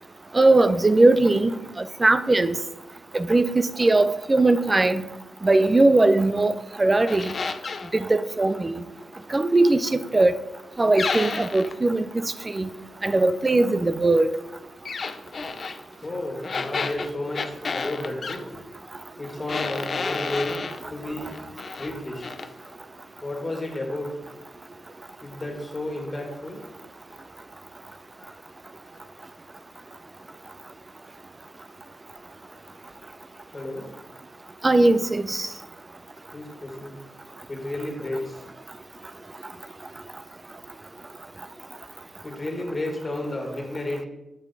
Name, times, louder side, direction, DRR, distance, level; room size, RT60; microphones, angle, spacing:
voice 1, 0.3-2.6 3.1-5.1 5.4-7.3 7.9-8.8 9.3-10.3 10.8-12.7 13.0-14.3 34.6-35.5, right 2 dB, 25° right, 0.5 m, -20 dB
sound 1, 7.1-7.9 11.0-11.8 14.9-15.8 16.4-18.4 19.5-20.8 21.3-21.9 22.2-22.5, left 4 dB, 50° left, 0.5 m, -31 dB
voice 2, 16.0-18.6 19.2-21.3 21.8-22.2 23.2-24.2 25.2-26.6 27.1-27.2 28.2-28.4 28.8-28.9 33.5-33.8 36.3-37.0 37.5-38.4 42.2-44.1, left 1 dB, 25° left, 2.2 m, -32 dB
7.1 x 6.4 x 4.0 m
cardioid pair, 75°, 0 cm